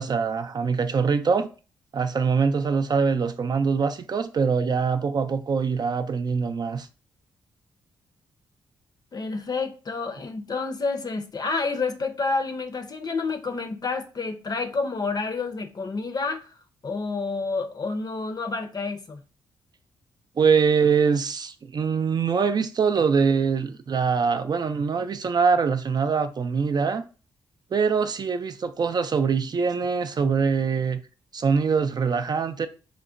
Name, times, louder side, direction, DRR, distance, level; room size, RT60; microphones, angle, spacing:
voice 1, 0.0-1.5 1.9-6.9 20.4-27.0 27.7-31.0 31.3-32.7, right 5 dB, 45° right, 0.3 m, -23 dB
voice 2, 9.1-16.5 16.8-19.2, left 4 dB, 40° left, 0.5 m, -29 dB
3.6 x 2.1 x 2.4 m
supercardioid pair, 45°, 10 cm